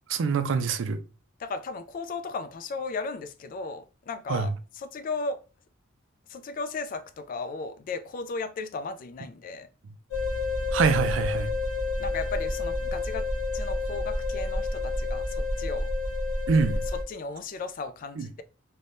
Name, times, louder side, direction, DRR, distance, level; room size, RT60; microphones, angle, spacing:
voice 1, 0.1-1.0 4.3-4.5 10.7-11.5 16.5-16.8 18.2-18.3, right 5 dB, 75° right, 0.4 m, -25 dB
voice 2, 1.4-5.4 6.3-9.7 12.0-13.3 13.5-15.9 16.9-18.4, left 3 dB, 45° left, 0.3 m, -35 dB
sound 1, 10.1-17.0, left 2 dB, 90° left, 1.1 m, -29 dB
2.6 x 2.1 x 3.3 m
head